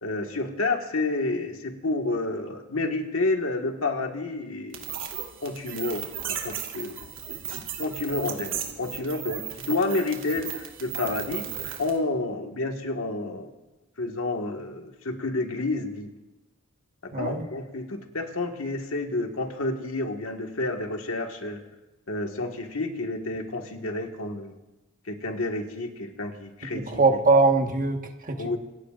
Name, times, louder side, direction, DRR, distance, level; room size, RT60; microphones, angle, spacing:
voice 1, 0.0-4.8 5.4-7.0 7.8-11.5 11.8-13.5 14.0-16.1 17.0-21.6 22.1-24.5 25.1-27.0 28.4-28.6, left 2 dB, 75° left, 3 dB, 1.8 m, -30 dB
sound 1, 4.7-12.0, right 9 dB, 70° right, 2.9 m, -35 dB
voice 2, 17.1-17.4 26.7-28.6, right 3 dB, 40° right, 4 dB, 1.5 m, -22 dB
26.5 x 19.5 x 2.6 m, 1.0 s
head